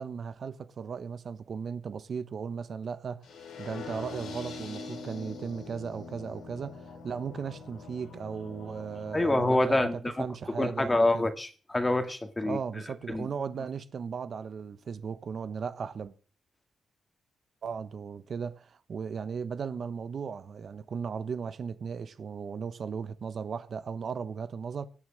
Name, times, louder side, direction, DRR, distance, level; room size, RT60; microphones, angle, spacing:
voice 1, 0.0-11.3 12.4-16.1 17.6-24.9, right 6 dB, 55° right, 1.1 m, -36 dB
sound 1, 3.2-9.2, left 4 dB, 85° left, 6.6 m, -43 dB
voice 2, 9.1-10.3 10.5-12.6 13.1-13.3, left 2 dB, 15° left, 2.0 m, -26 dB
17.5 x 9.8 x 6.5 m
cardioid pair, 110°, 0 cm